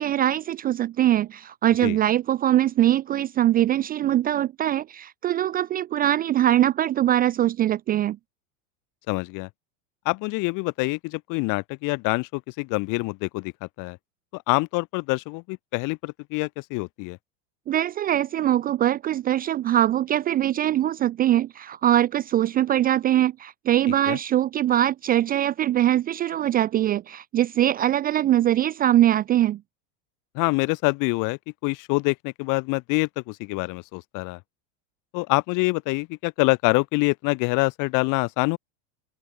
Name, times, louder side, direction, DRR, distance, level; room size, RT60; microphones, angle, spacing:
voice 1, 0.0-8.2 17.7-29.6, right 12 dB, 20° right, 0.5 m, -22 dB
voice 2, 9.1-9.5 10.1-14.0 14.3-17.2 24.1-24.2 30.3-34.4 35.1-38.6, left 27 dB, 50° left, 2.5 m, -26 dB
supercardioid pair, 145°, 40 cm